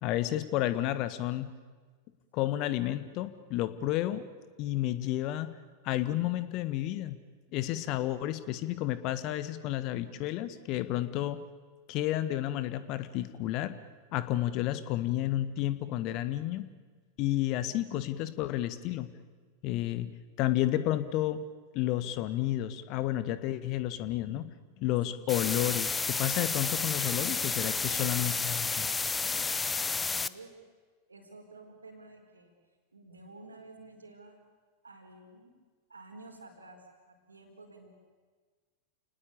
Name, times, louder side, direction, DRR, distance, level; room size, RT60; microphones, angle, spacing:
voice 1, 0.0-1.5 2.3-4.2 4.6-5.5 5.8-7.2 7.5-11.4 11.9-13.7 14.1-16.7 17.2-19.1 19.6-20.1 20.4-21.4 21.7-28.9, left 14 dB, 40° left, 13 dB, 1.4 m, -31 dB
sound 1, 25.3-30.3, left 4 dB, 15° left, 0.7 m, -31 dB
voice 2, 27.9-28.8 29.2-30.5 31.1-32.5 32.9-34.4 34.8-35.5 35.9-37.9, right 2 dB, 80° right, 4 dB, 4.6 m, -52 dB
29.5 x 19.0 x 8.6 m, 1.5 s
figure-of-eight pair, 90°, 0 cm